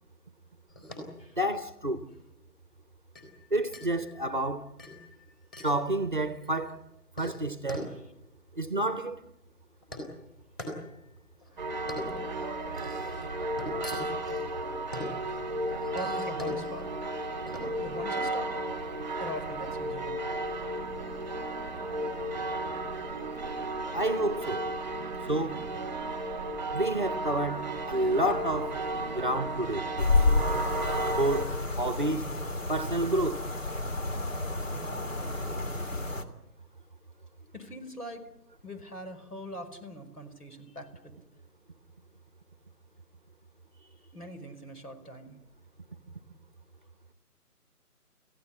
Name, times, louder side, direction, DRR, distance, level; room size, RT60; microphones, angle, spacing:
sound 1, 0.7-19.5, left 1 dB, 15° left, 4.0 m, -44 dB
voice 1, 1.4-2.0 3.5-4.7 5.6-6.8 7.2-7.9 8.6-9.2 23.9-24.7 25.3-25.7 26.7-28.8 29.1-30.1 31.2-32.3 32.7-33.5, right 1 dB, 35° right, 0.9 m, -29 dB
voice 2, 11.5-11.9 15.9-16.9 17.8-18.5 19.2-20.2 37.5-38.2 38.6-41.1 43.8-45.4, equal, 80° left, 5.1 m, -42 dB
sound 2, 11.6-31.5, right 2 dB, 10° right, 1.8 m, -34 dB
sound 3, 30.0-36.2, left 3 dB, 55° left, 2.9 m, -30 dB
30.0 x 15.5 x 8.6 m
figure-of-eight pair, 165°, 46 cm